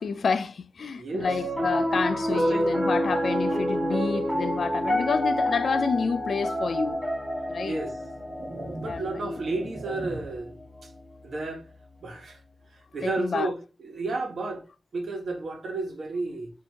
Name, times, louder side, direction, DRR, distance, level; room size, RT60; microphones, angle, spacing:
voice 1, 0.0-7.0 7.5-7.8 8.8-9.4 13.0-13.5, left 5 dB, 85° left, 0.4 m, -29 dB
voice 2, 1.0-1.3 2.3-2.8 7.6-8.0 8.8-10.5 10.8-10.9 11.2-11.6 12.0-12.4 12.7-14.6 14.9-16.5, right 3 dB, 80° right, 1.1 m, -32 dB
Piano, 1.2-11.5, equal, 10° right, 1.7 m, -29 dB
sound 1, 6.9-7.0 7.8-10.6, right 1 dB, 50° right, 0.9 m, -40 dB
4.4 x 2.7 x 3.4 m
wide cardioid pair, 125°, 0 cm